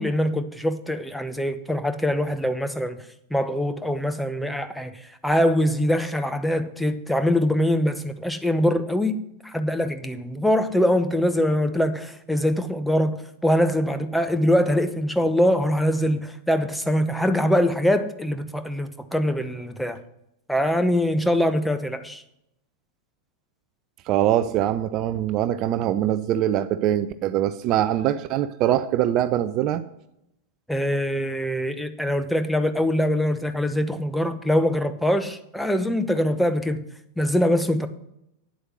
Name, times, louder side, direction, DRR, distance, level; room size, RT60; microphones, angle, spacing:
voice 1, 0.0-3.0 3.3-13.2 13.4-20.0 20.5-22.2 30.7-36.8 37.2-37.9, equal, ahead, 0.8 m, -23 dB
voice 2, 24.1-29.8, right 12 dB, 40° right, 0.5 m, -23 dB
9.2 x 7.9 x 6.3 m
figure-of-eight pair, 90°, 0 cm